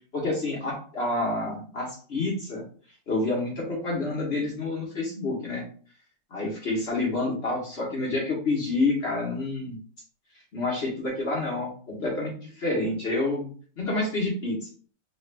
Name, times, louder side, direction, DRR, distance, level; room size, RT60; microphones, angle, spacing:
voice 1, 0.1-2.6 3.1-5.6 6.3-9.8 10.5-13.5 13.8-14.6, left 2 dB, 45° left, -4 dB, 1.0 m, -28 dB
3.3 x 2.4 x 3.2 m, 0.43 s
omnidirectional pair, 2.0 m